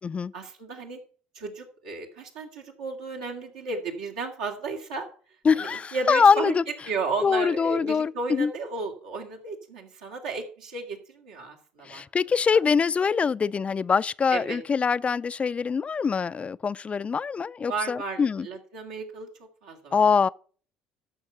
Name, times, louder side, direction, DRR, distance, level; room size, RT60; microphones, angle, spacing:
voice 1, 0.3-1.0 1.3-5.1 5.5-6.5 6.8-12.0 12.5-12.6 14.3-14.6 17.6-19.3 19.6-20.0, right 4 dB, 80° right, 2.3 m, -34 dB
voice 2, 5.5-6.6 7.2-8.5 11.8-18.5 19.9-20.3, left 5 dB, 30° left, 0.4 m, -24 dB
13.5 x 6.1 x 5.7 m
hypercardioid pair, 55°, 4 cm